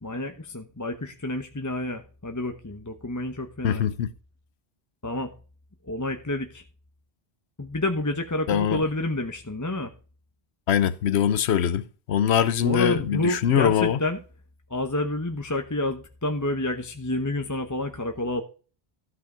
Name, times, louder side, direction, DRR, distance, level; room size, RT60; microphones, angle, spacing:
voice 1, 0.0-3.9 5.0-5.3 5.8-6.6 7.6-9.9 12.6-14.2 14.7-18.4, left 2 dB, 20° left, 0.9 m, -29 dB
voice 2, 3.6-4.1 8.5-8.8 10.7-14.0, left 9 dB, 85° left, 1.0 m, -23 dB
13.5 x 5.6 x 5.0 m
omnidirectional pair, 1.1 m